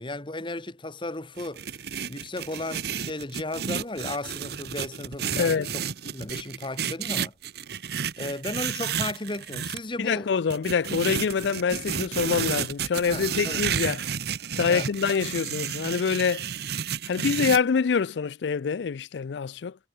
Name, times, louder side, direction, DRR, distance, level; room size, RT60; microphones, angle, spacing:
voice 1, 0.0-1.8 2.1-7.3 8.2-10.3 13.1-13.7 14.7-14.9, left 2 dB, 25° left, 1.6 m, -35 dB
sound 1, 1.4-9.8 10.5-17.6, right 7 dB, 60° right, 0.9 m, -31 dB
voice 2, 5.3-5.7 10.0-14.0 14.6-16.5 17.1-19.8, left 6 dB, 70° left, 0.4 m, -25 dB
head